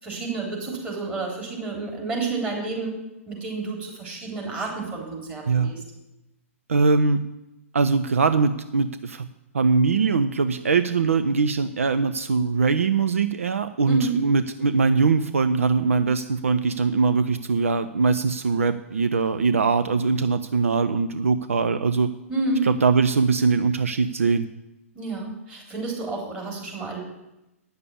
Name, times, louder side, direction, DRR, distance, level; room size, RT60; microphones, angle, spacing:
voice 1, 0.0-3.0 3.3-5.8 13.9-14.1 22.3-22.7 24.9-27.0, right 3 dB, 15° right, -2 dB, 3.7 m, -30 dB
voice 2, 6.7-7.2 7.7-9.3 9.5-22.1 22.6-24.5, right 4 dB, 70° right, 11 dB, 0.5 m, -22 dB
9.5 x 6.8 x 8.4 m, 0.94 s
figure-of-eight pair, 115°, 8 cm